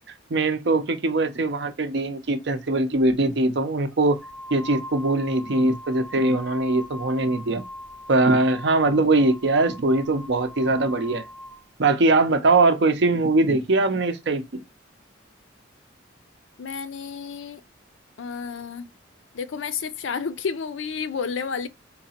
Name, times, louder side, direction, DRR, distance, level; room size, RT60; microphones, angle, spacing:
voice 1, 0.3-4.2 4.5-7.6 8.1-11.2 11.8-14.6, right 2 dB, 60° right, 0.6 m, -21 dB
sound 1, 3.9-11.6, left 1 dB, ahead, 1.2 m, -41 dB
voice 2, 16.6-17.6 18.2-18.9 19.3-21.7, left 5 dB, 80° left, 0.4 m, -31 dB
3.8 x 2.9 x 2.8 m
head